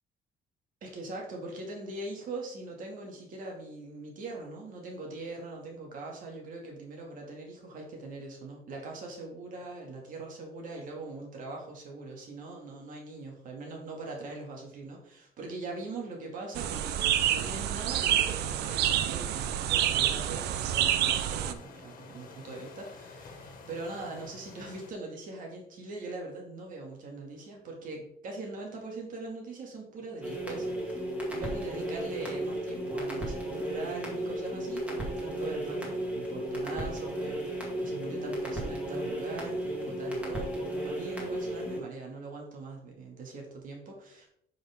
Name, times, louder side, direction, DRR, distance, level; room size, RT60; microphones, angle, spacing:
voice 1, 0.8-31.0 31.3-44.3, right 2 dB, 55° right, 0 dB, 2.3 m, -41 dB
sound 1, 16.5-21.5, right 11 dB, 80° right, 0.6 m, -28 dB
sound 2, 17.7-24.9, left 4 dB, 55° left, 1.6 m, -52 dB
sound 3, 30.2-41.8, right 1 dB, 5° right, 2.0 m, -34 dB
9.0 x 5.7 x 3.6 m, 0.73 s
cardioid pair, 170°, 17 cm